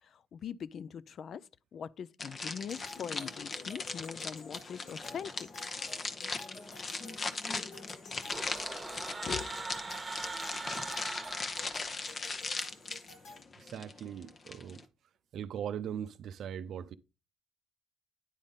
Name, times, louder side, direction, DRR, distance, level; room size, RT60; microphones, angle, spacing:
voice 1, 0.3-5.5 9.3-9.5, left 7 dB, 60° left, 0.3 m, -42 dB
sound 1, 2.2-14.8, left 4 dB, 40° left, 0.8 m, -39 dB
sound 2, 2.7-13.4, left 3 dB, 75° left, 2.3 m, -53 dB
sound 3, 8.3-12.3, right 3 dB, 25° right, 1.1 m, -41 dB
voice 2, 13.6-14.8 15.3-16.9, right 9 dB, 70° right, 0.5 m, -40 dB
9.9 x 3.6 x 4.0 m
cardioid pair, 90°, 0 cm